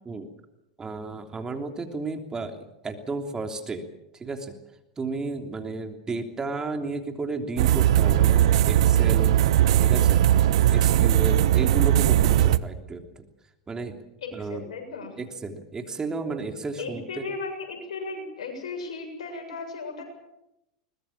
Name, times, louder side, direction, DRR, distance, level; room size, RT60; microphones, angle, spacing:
voice 1, 0.8-3.9 4.1-4.5 5.0-9.4 9.8-10.2 10.7-13.3 13.7-14.0 14.3-14.7 15.2-17.2, right 3 dB, 20° right, 5 dB, 3.2 m, -33 dB
sound 1, 7.6-12.6, right 12 dB, 70° right, 1.0 m, -19 dB
voice 2, 14.2-15.1 16.8-20.0, left 3 dB, 80° left, 3 dB, 7.5 m, -35 dB
22.5 x 20.5 x 7.4 m, 0.88 s
hypercardioid pair, 95°, 3 cm